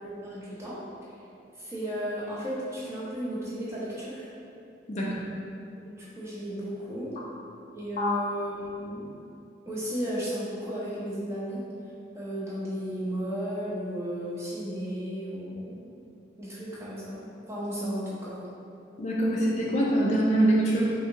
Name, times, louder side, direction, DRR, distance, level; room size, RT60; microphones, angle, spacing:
voice 1, 0.0-0.8 1.6-4.3 5.8-7.1 7.7-9.1 9.7-11.7 12.1-15.8 16.4-18.5, equal, 15° right, -9 dB, 0.7 m, -34 dB
voice 2, 4.9-5.2 8.0-8.2 19.0-20.9, right 1 dB, 40° left, -4 dB, 0.4 m, -24 dB
3.4 x 2.6 x 2.8 m, 2.5 s
head